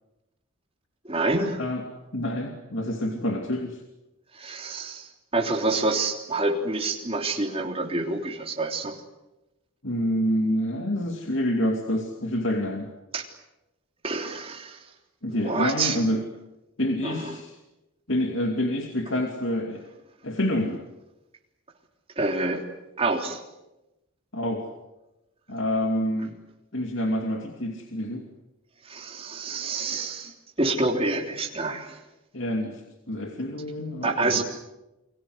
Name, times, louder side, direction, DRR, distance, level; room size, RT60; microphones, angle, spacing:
voice 1, 1.0-1.6 4.3-9.0 13.1-13.3 14.0-14.8 15.3-16.0 17.0-17.4 22.1-22.6 23.0-23.4 28.8-30.3 30.6-32.0 34.0-34.4, right 2 dB, 25° right, 3 dB, 3.4 m, -27 dB
voice 2, 2.1-3.8 9.8-12.9 15.2-16.2 16.8-17.5 18.1-19.8 20.2-20.8 24.3-24.7 25.5-26.4 26.7-28.3 32.3-32.8 33.1-34.4, left 1 dB, 60° left, 3 dB, 2.7 m, -27 dB
29.5 x 22.0 x 8.1 m, 0.96 s
head